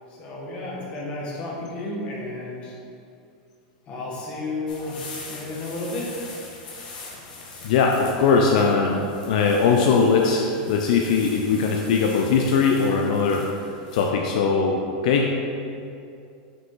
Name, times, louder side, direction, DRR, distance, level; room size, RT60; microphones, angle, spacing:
voice 1, 0.1-2.8 3.9-6.1, left 2 dB, 25° left, -4 dB, 1.2 m, -32 dB
sound 1, 4.7-14.1, left 3 dB, 85° left, 1.4 m, -42 dB
voice 2, 7.6-13.4 13.9-15.3, left 5 dB, 60° left, 1 dB, 0.5 m, -20 dB
5.9 x 5.0 x 3.8 m, 2.5 s
supercardioid pair, 165°, 4 cm